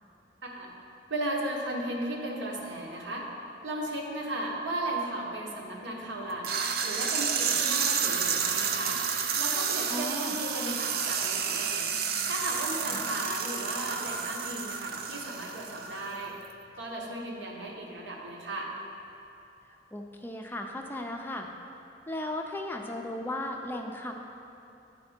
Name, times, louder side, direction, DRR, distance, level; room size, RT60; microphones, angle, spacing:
voice 1, 1.1-3.3 3.6-6.5 6.8-9.0 9.4-11.9 12.3-16.3 16.8-18.7, right 1 dB, 85° right, -2 dB, 1.2 m, -35 dB
sound 1, 6.4-16.2, right 6 dB, 55° right, 0.4 m, -30 dB
voice 2, 9.9-10.3 12.9-13.0 19.9-21.5 22.1-24.1, left 1 dB, 10° left, 2 dB, 0.4 m, -36 dB
10.5 x 4.3 x 4.3 m, 2.8 s
head